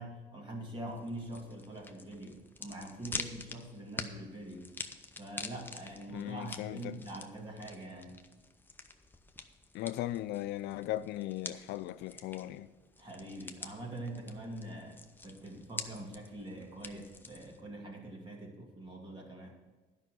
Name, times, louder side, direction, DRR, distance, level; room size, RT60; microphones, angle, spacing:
voice 1, 0.0-4.7 5.2-8.2 13.0-19.6, right 1 dB, 30° right, 2.5 m, -44 dB
sound 1, 0.9-17.6, left 3 dB, 10° left, 0.7 m, -47 dB
voice 2, 6.1-7.0 9.7-12.7 16.9-17.0, left 14 dB, 80° left, 0.4 m, -38 dB
11.0 x 5.6 x 7.7 m
cardioid pair, 110°, 17 cm